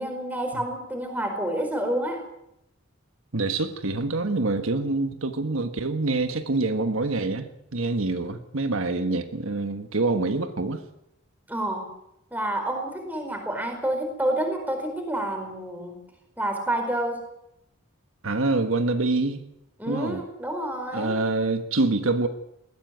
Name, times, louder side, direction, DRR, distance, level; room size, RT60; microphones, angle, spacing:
voice 1, 0.0-2.2 11.5-11.9 12.3-16.0 16.4-17.2 19.8-21.1, right 1 dB, 10° right, 4 dB, 4.7 m, -29 dB
voice 2, 3.3-10.8 18.2-19.4 19.9-20.2 20.9-22.3, right 3 dB, 75° right, 8 dB, 1.4 m, -26 dB
20.5 x 15.5 x 9.5 m, 0.82 s
head